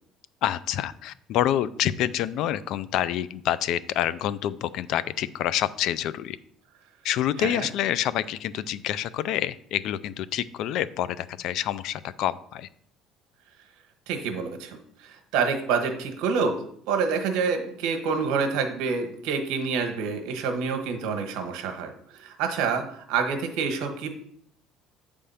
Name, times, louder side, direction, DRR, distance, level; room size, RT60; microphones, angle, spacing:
voice 1, 0.4-6.4 7.0-12.7, left 11 dB, 65° left, 17 dB, 0.4 m, -27 dB
voice 2, 14.1-16.6 16.9-24.1, right 5 dB, 80° right, 6 dB, 1.2 m, -27 dB
8.5 x 3.5 x 5.6 m, 0.68 s
cardioid pair, 120°, 0 cm